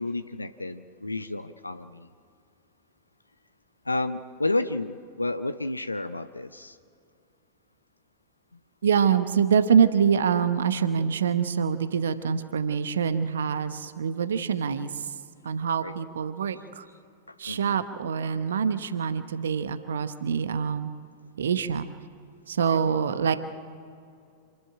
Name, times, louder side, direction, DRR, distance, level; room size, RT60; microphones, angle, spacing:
voice 1, 0.0-2.1 3.8-6.8 15.8-15.9 17.3-17.8 22.7-22.8, left 2 dB, 85° left, 11 dB, 0.7 m, -31 dB
voice 2, 8.8-15.1 15.4-16.8 17.4-20.9 21.4-21.8 22.5-23.4, right 7 dB, 70° right, 12 dB, 1.0 m, -25 dB
26.5 x 13.0 x 8.9 m, 2.5 s
figure-of-eight pair, 90°, 0 cm